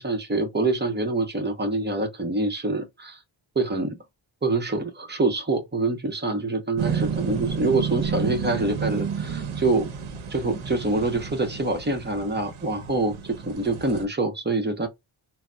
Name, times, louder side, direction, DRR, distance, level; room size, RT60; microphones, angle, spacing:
voice 1, 0.0-3.2 3.6-4.0 4.4-9.9 10.3-14.9, right 2 dB, 20° right, 0.8 m, -25 dB
sound 1, 6.8-14.0, right 6 dB, 85° right, 0.8 m, -31 dB
3.8 x 2.0 x 2.2 m
wide cardioid pair, 85°, 49 cm